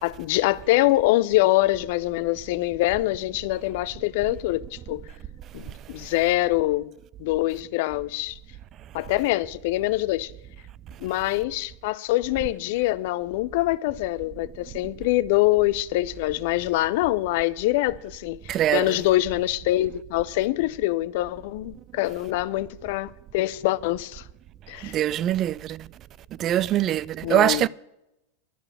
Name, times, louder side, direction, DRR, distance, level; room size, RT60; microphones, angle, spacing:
voice 1, 0.0-5.0 5.5-6.9 7.2-8.4 8.9-10.3 11.0-24.2 24.7-24.9 27.2-27.7, left 17 dB, 60° left, 0.5 m, -24 dB
voice 2, 18.5-19.0 24.8-25.9 26.4-27.7, right 12 dB, 40° right, 0.4 m, -23 dB
12.0 x 6.8 x 8.5 m
hypercardioid pair, 95°, 0 cm